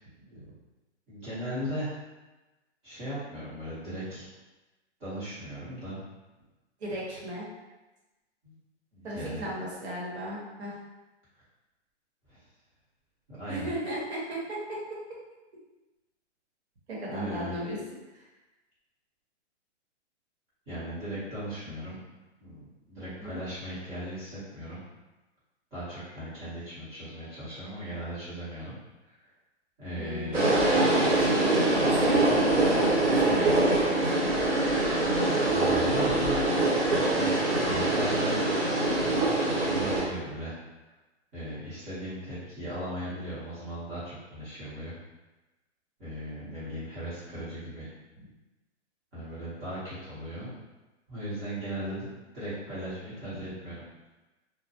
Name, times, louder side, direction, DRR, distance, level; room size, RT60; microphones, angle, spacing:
voice 1, 1.1-2.0 2.8-4.3 5.0-6.0 8.4-8.5 8.9-9.5 12.3-12.4 13.3-13.7 17.1-17.6 20.7-22.0 22.4-24.8 25.7-28.7 29.0-29.2 29.8-30.4 35.5-36.5 37.0-38.4 39.1-40.6 41.3-44.9 46.0-47.9 49.1-50.5 51.1-52.1 52.3-53.9, equal, 20° right, -13 dB, 0.9 m, -37 dB
voice 2, 6.8-7.5 9.0-10.7 13.5-14.8 16.9-17.8 18.1-18.3 23.2-23.4 29.9-34.0 53.2-53.5, right 1 dB, 65° right, -5 dB, 1.0 m, -35 dB
sound 1, 30.3-40.0, right 2 dB, 90° right, 1.1 m, -24 dB
2.2 x 2.1 x 2.7 m, 1.1 s
hypercardioid pair, 150°, 36 cm